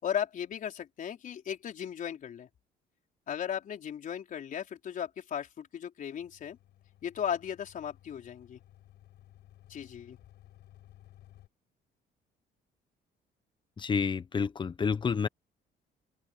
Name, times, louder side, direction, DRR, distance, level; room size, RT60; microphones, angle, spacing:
voice 1, 0.0-2.5 3.3-6.6 7.0-8.6 9.7-10.2, left 9 dB, 50° left, 4.4 m, -36 dB
sound 1, 6.2-11.5, left 13 dB, 75° left, 7.3 m, -57 dB
voice 2, 13.8-15.3, left 5 dB, 25° left, 0.9 m, -29 dB
cardioid pair, 130°, 18 cm